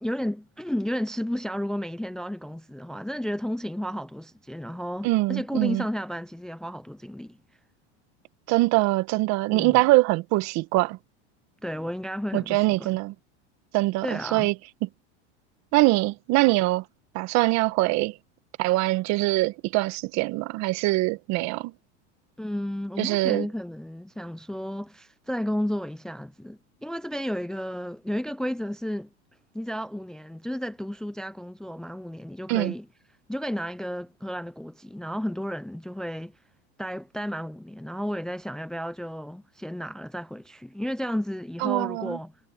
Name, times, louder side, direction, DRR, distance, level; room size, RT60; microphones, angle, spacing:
voice 1, 0.0-7.4 9.5-9.8 11.6-12.9 14.0-14.5 22.4-29.1 29.5-32.9 33.3-36.3 36.8-42.3, equal, ahead, 0.6 m, -32 dB
voice 2, 5.0-5.8 8.5-11.0 12.3-13.1 13.7-14.5 14.8-14.9 15.7-16.8 17.1-18.1 18.6-21.7 23.0-23.5 32.5-32.7 41.6-42.2, right 20 dB, 50° right, 1.5 m, -23 dB
supercardioid pair, 120°, 34 cm